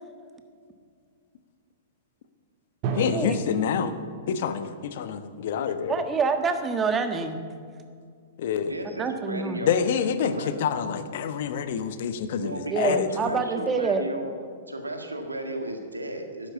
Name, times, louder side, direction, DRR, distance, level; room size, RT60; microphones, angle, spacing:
Drum, 2.8-4.7, right 4 dB, 40° right, 2.3 m, -33 dB
voice 1, 2.9-4.0 4.3-5.9 8.4-8.7 9.6-13.4, left 7 dB, 55° left, 11 dB, 1.1 m, -27 dB
voice 2, 5.9-7.4 8.8-9.6 12.7-14.1, right 4 dB, 20° right, 7 dB, 1.5 m, -26 dB
voice 3, 8.7-9.9 10.2-10.5 12.4-14.3 14.7-16.5, right 1 dB, 90° right, 5 dB, 1.8 m, -34 dB
12.0 x 10.5 x 8.3 m, 2.1 s
figure-of-eight pair, 105°, 0 cm